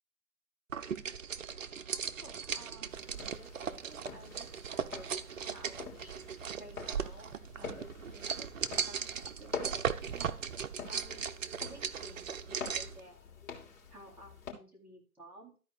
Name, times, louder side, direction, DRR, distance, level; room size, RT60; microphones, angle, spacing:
sound 1, 0.7-13.0, right 7 dB, 55° right, 0.8 m, -38 dB
voice 1, 2.2-7.3 7.6-8.5 8.9-10.4 10.9-11.3 11.7-13.4 13.9-15.6, right 1 dB, 5° right, -5 dB, 2.3 m, -54 dB
sound 2, 2.9-14.5, left 5 dB, 60° left, 3.5 m, -47 dB
13.0 x 4.7 x 5.0 m, 0.38 s
figure-of-eight pair, 135°, 46 cm